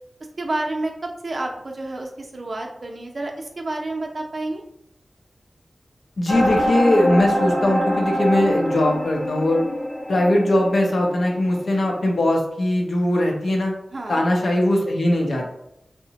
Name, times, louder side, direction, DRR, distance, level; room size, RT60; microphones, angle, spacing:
voice 1, 0.4-4.6 13.9-14.3, right 2 dB, 65° right, 2 dB, 0.5 m, -29 dB
voice 2, 6.2-9.6 10.1-13.7 14.1-15.5, left 1 dB, 85° left, 0 dB, 0.6 m, -20 dB
sound 1, 6.3-11.8, equal, 35° left, 0.9 m, -24 dB
2.8 x 2.1 x 2.8 m, 0.79 s
cardioid pair, 45°, 0 cm